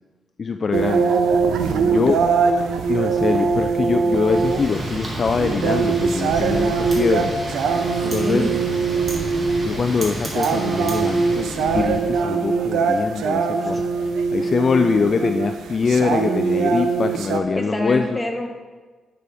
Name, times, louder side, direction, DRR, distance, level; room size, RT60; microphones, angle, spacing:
voice 1, 0.4-1.2 1.9-2.2 2.9-7.3 8.1-8.5 9.6-18.0, left 5 dB, 45° left, 7 dB, 0.3 m, -23 dB
sound 1, 0.7-17.4, right 5 dB, 85° right, 0.6 m, -22 dB
voice 2, 1.6-2.1 6.3-6.5 8.0-8.5 13.6-13.8 17.5-18.5, left 1 dB, 10° left, 3 dB, 1.1 m, -27 dB
Wind, 4.0-12.2, right 1 dB, 40° right, 2.0 m, -31 dB
9.4 x 6.1 x 3.4 m, 1.3 s
cardioid pair, 100°, 0 cm